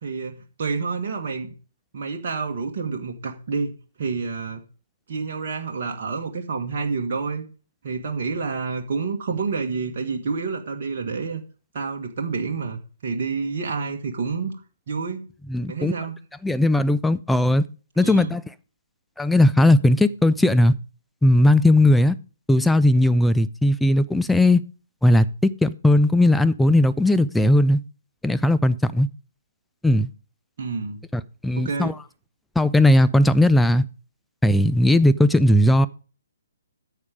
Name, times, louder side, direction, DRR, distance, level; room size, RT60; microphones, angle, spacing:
voice 1, 0.0-1.5 1.9-3.7 4.0-4.6 5.1-7.4 7.8-11.4 11.7-14.5 14.9-15.3 15.7-16.2 18.0-18.3 30.6-31.0 31.6-32.0, right 4 dB, 45° right, 1.5 m, -28 dB
voice 2, 15.5-15.9 16.4-17.6 18.0-18.4 19.2-20.7 21.2-22.2 22.5-24.6 25.0-27.8 28.2-29.1 29.8-30.1 31.1-31.9 32.6-33.8 34.4-35.9, left 1 dB, 5° left, 0.4 m, -18 dB
9.4 x 7.1 x 5.0 m
figure-of-eight pair, 130°, 0 cm